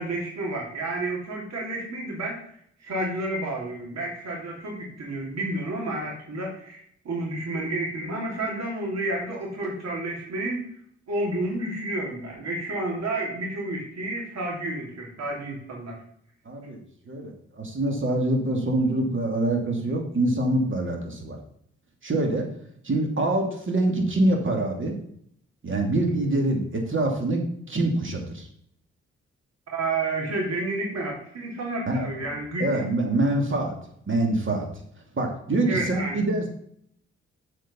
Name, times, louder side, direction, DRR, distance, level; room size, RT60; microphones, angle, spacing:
voice 1, 0.0-2.4 2.8-10.6 11.1-16.0 29.7-32.8 35.7-36.2, right 2 dB, 60° right, -1 dB, 3.1 m, -30 dB
voice 2, 16.5-16.8 17.1-21.4 22.0-22.4 22.8-25.0 25.6-28.5 31.9-32.3 32.6-33.7 34.1-34.7 35.1-36.5, right 2 dB, 45° right, 2 dB, 2.6 m, -25 dB
7.7 x 5.1 x 5.6 m, 0.67 s
hypercardioid pair, 45°, 29 cm